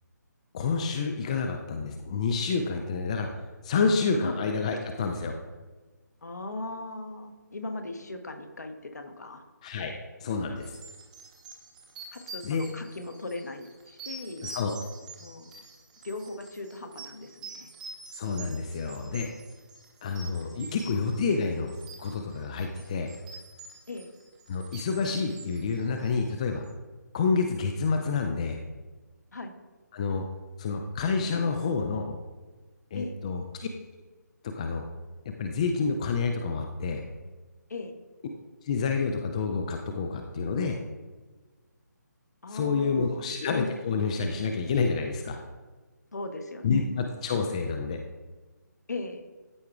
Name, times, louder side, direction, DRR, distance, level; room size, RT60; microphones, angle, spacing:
voice 1, 0.5-5.4 9.6-9.9 10.2-10.7 12.4-12.7 14.4-14.7 18.1-19.3 20.0-21.7 22.0-23.1 24.5-26.6 27.1-28.6 29.9-30.2 30.6-32.2 32.9-33.7 34.5-34.8 35.4-37.0 38.6-40.8 42.5-45.4 46.6-48.0, left 4 dB, 20° left, 4 dB, 0.4 m, -28 dB
voice 2, 6.2-9.4 12.1-14.5 15.2-15.5 16.0-17.7 23.9-24.1 29.3-29.5 32.9-33.2 37.7-37.9 42.4-43.4 46.1-46.9 48.9-49.2, left 2 dB, 60° left, 6 dB, 1.0 m, -38 dB
sound 1, 10.6-26.4, right 3 dB, 25° right, 1.0 m, -46 dB
13.5 x 4.7 x 2.3 m, 1.3 s
figure-of-eight pair, 150°, 10 cm